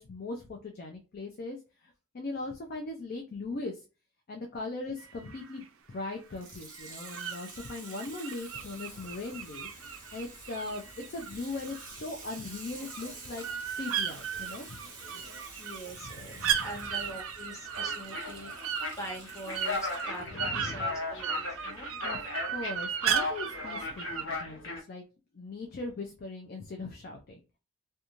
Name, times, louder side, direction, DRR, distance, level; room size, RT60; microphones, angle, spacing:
voice 1, 0.0-3.8 4.3-9.7 10.1-10.8 11.1-14.8 16.0-16.7 20.3-20.9 22.0-25.0 25.3-27.4, left 3 dB, 45° left, 2 dB, 0.4 m, -39 dB
sound 1, 5.0-5.7 6.7-12.0 12.3-24.2, right 8 dB, 65° right, 0.4 m, -36 dB
Water tap faucet / Sink (filling or washing), 6.3-20.3 21.0-21.1, right 3 dB, 40° right, 1.0 m, -49 dB
sound 2, 8.5-9.3 9.6-10.1 10.4-24.8, left 3 dB, 60° left, 0.7 m, -39 dB
voice 2, 15.6-18.5 19.0-21.9, right 1 dB, 15° left, -1 dB, 0.7 m, -43 dB
2.5 x 2.2 x 2.9 m, 0.31 s
head